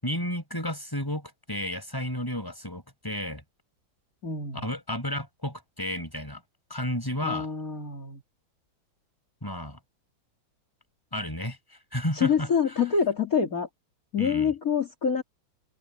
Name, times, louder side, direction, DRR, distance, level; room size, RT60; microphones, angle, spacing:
voice 1, 0.0-3.4 4.5-6.4 6.7-7.5 9.4-9.8 11.1-11.6 11.9-12.5 14.2-14.5, left 1 dB, 10° left, 6.7 m, -32 dB
voice 2, 4.2-4.6 7.2-8.2 12.1-13.7 14.1-15.2, left 6 dB, 45° left, 3.0 m, -26 dB
open air
omnidirectional pair, 2.2 m